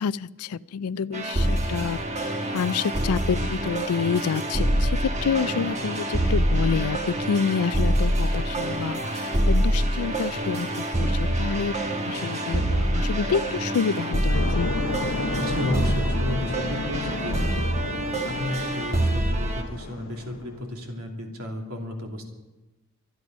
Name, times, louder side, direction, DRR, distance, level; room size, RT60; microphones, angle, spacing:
voice 1, 0.0-11.7 12.0-14.7, left 6 dB, 90° left, 19 dB, 0.4 m, -28 dB
sound 1, 1.1-19.6, right 1 dB, 30° right, 1.4 m, -26 dB
sound 2, 14.3-20.6, left 3 dB, 65° left, 0.8 m, -31 dB
voice 2, 15.4-17.4 18.2-22.3, left 1 dB, 75° right, 1 dB, 2.8 m, -33 dB
25.0 x 9.3 x 5.3 m, 1.1 s
head